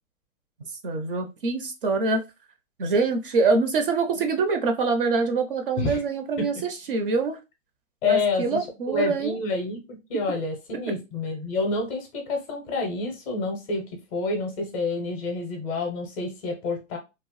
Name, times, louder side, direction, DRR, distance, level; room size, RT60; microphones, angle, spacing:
voice 1, 0.8-2.2 2.8-7.4 8.0-9.4, right 4 dB, 45° right, 6 dB, 0.4 m, -25 dB
voice 2, 8.0-17.0, left 3 dB, 25° left, 3 dB, 0.5 m, -28 dB
2.8 x 2.0 x 3.0 m, 0.26 s
hypercardioid pair, 145°, 40 cm